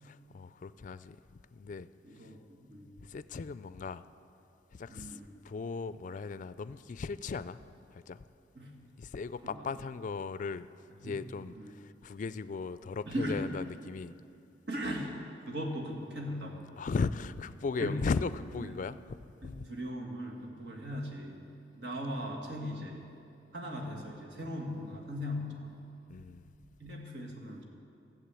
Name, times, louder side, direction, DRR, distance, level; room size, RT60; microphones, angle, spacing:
voice 1, 0.0-1.2 1.5-1.9 2.2-2.3 3.0-4.0 4.7-8.2 9.0-10.7 11.0-14.1 16.8-19.7 26.1-26.5, left 4 dB, 45° left, 15 dB, 0.3 m, -37 dB
voice 2, 2.0-2.9 4.9-5.3 8.6-8.8 9.4-9.5 11.0-11.1 11.6-11.7 13.1-13.5 14.7-15.1 15.5-16.8 17.8-18.0 19.4-21.5 21.7-23.1 23.5-25.8 26.8-27.6, equal, 80° right, 0 dB, 2.0 m, -38 dB
13.5 x 7.3 x 8.3 m, 2.7 s
head